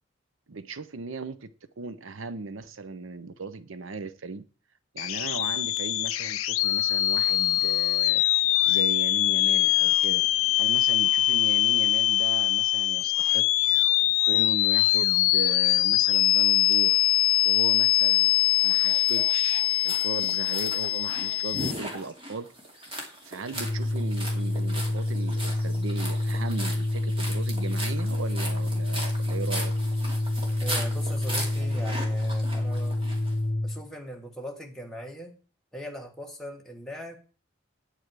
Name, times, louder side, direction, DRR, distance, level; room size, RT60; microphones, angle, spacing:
voice 1, 0.5-1.5 1.8-4.4 4.9-10.2 10.6-13.5 14.2-17.0 17.4-18.3 18.6-22.5 23.2-29.7, right 3 dB, 75° right, 0.7 m, -37 dB
sound 1, 5.0-21.7, left 15 dB, 80° left, 0.4 m, -23 dB
sound 2, 18.6-33.3, right 1 dB, 25° right, 2.5 m, -38 dB
Organ, 23.5-33.8, left 1 dB, 35° left, 0.7 m, -28 dB
voice 2, 30.6-33.3 33.6-35.3 35.7-37.2, equal, ahead, 1.5 m, -40 dB
9.1 x 8.8 x 4.7 m
head